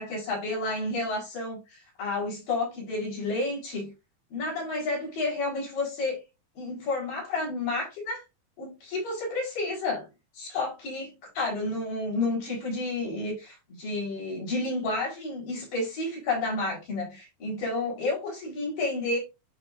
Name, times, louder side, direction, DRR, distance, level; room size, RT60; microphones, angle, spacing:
voice 1, 0.0-3.9 4.3-6.2 6.6-8.2 8.6-10.1 10.4-19.2, left 2 dB, 65° left, 5.7 m, -31 dB
11.0 x 4.5 x 2.6 m
omnidirectional pair, 4.2 m